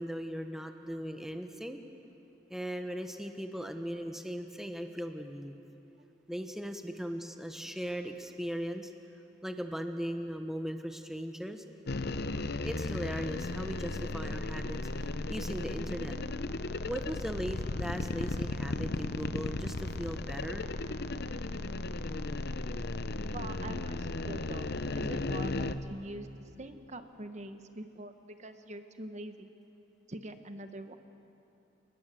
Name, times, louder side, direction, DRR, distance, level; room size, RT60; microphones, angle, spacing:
voice 1, 0.0-1.8 2.5-5.6 6.3-8.9 9.4-11.6 12.6-14.8 15.3-16.2 16.8-20.7, equal, ahead, 6 dB, 1.1 m, -38 dB
sound 1, 11.9-25.8, left 2 dB, 60° left, 0.8 m, -35 dB
voice 2, 23.3-29.5 30.1-31.0, right 1 dB, 40° right, 8 dB, 1.1 m, -44 dB
28.0 x 20.0 x 7.6 m, 2.9 s
head